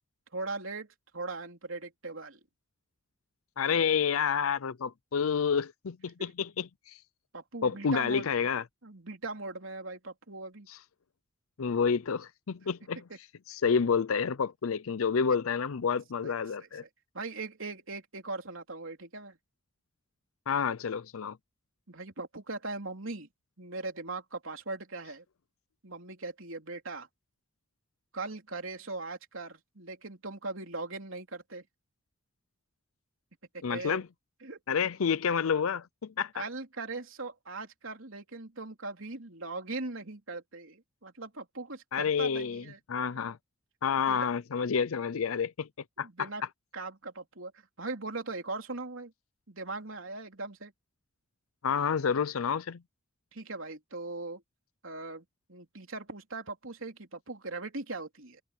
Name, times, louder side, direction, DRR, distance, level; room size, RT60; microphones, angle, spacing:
voice 1, 0.3-2.4 6.2-6.3 7.3-8.3 8.8-10.7 13.1-13.2 16.2-16.3 16.6-16.9 17.1-19.4 21.9-23.3 23.6-25.2 25.8-27.1 28.1-31.7 33.5-34.0 34.4-34.6 36.3-42.8 43.1-43.3 44.1-44.3 46.0-46.4 46.7-49.1 49.5-50.7 53.3-54.4 54.8-58.4, right 3 dB, 75° right, 3.4 m, -40 dB
voice 2, 3.6-7.0 7.6-8.6 10.7-10.8 11.6-13.0 13.5-16.8 20.5-21.4 33.6-34.1 34.7-36.4 41.9-42.6 42.9-43.4 43.8-45.7 46.0-46.1 51.6-52.8, left 6 dB, 90° left, 0.5 m, -29 dB
head